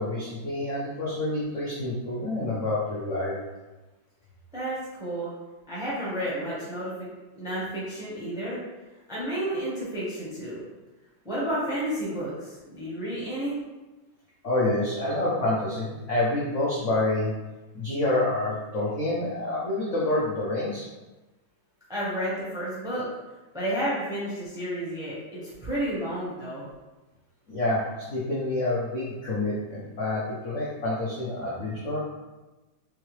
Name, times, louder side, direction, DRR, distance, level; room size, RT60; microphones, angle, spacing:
voice 1, 0.0-3.3 14.4-17.3 17.7-20.9 27.5-32.0, left 2 dB, 60° left, -7 dB, 0.8 m, -28 dB
voice 2, 4.5-5.3 5.7-8.6 9.1-10.6 11.2-13.6 21.9-23.1 23.5-26.6, right 1 dB, 5° right, -8 dB, 0.7 m, -31 dB
3.6 x 3.3 x 3.1 m, 1.1 s
omnidirectional pair, 2.2 m